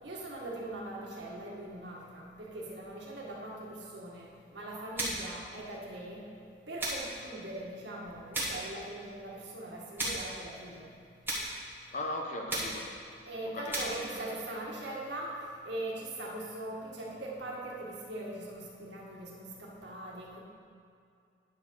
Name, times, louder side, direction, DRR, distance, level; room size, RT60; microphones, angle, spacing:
voice 1, 0.0-6.2 6.7-10.9 13.3-15.3 15.6-20.4, right 1 dB, 70° right, -3 dB, 1.7 m, -41 dB
sound 1, 5.0-5.4 6.8-7.2 8.3-8.7 10.0-10.3 11.2-11.6 12.5-12.9 13.7-14.1, right 1 dB, 10° right, 1.4 m, -34 dB
voice 2, 11.9-12.9 13.4-14.2, left 1 dB, 40° left, 2 dB, 0.8 m, -38 dB
9.7 x 4.7 x 6.4 m, 2.4 s
head